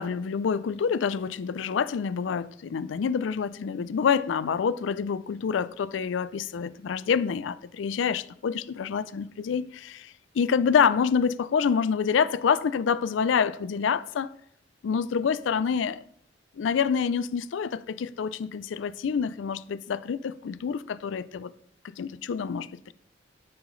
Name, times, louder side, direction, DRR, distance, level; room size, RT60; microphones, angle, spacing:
voice 1, 0.0-14.3 14.8-15.9 16.6-21.5 21.9-22.9, left 6 dB, 90° left, 0.4 m, -27 dB
9.6 x 7.7 x 3.2 m
head